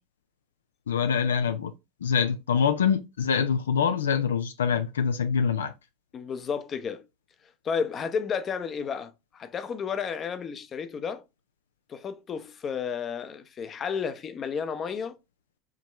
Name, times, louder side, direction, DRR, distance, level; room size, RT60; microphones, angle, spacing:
voice 1, 0.9-1.7 2.0-5.7, left 7 dB, 85° left, 0.4 m, -25 dB
voice 2, 6.1-7.0 7.6-11.2 11.9-15.2, left 6 dB, 35° left, 0.7 m, -32 dB
4.7 x 3.0 x 3.3 m
hypercardioid pair, 80°, 0 cm